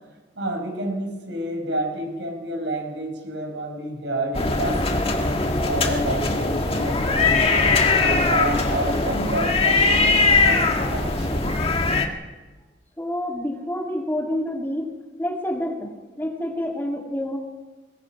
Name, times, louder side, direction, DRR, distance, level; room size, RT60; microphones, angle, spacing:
voice 1, 0.4-5.1 5.6-11.6, right 1 dB, 80° right, 3 dB, 5.6 m, -29 dB
sound 1, 4.3-12.1, left 3 dB, 35° left, 1.6 m, -21 dB
voice 2, 13.0-14.9 15.2-17.4, left 1 dB, 10° left, 1 dB, 2.3 m, -28 dB
21.5 x 21.0 x 5.9 m, 1.2 s
head